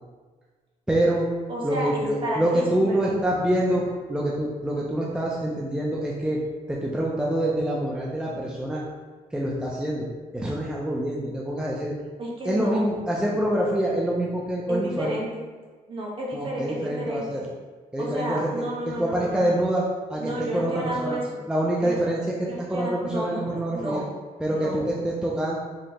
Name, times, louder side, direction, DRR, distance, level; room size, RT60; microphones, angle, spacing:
voice 1, 0.9-1.3 1.6-6.4 6.7-8.8 9.3-10.1 10.3-11.9 12.4-15.1 16.3-17.4 17.9-18.5 18.9-19.8 20.1-21.2 21.5-22.2 22.7-24.0 24.4-25.6, right 1 dB, 5° right, -4 dB, 0.5 m, -26 dB
voice 2, 1.5-3.2 12.2-12.9 14.7-15.5 15.9-17.4 18.0-19.6 20.2-21.4 21.8-22.0 22.5-24.1 24.5-24.8, right 1 dB, 40° right, -4 dB, 1.2 m, -32 dB
5.1 x 2.9 x 2.9 m, 1.4 s
cardioid pair, 110°, 14 cm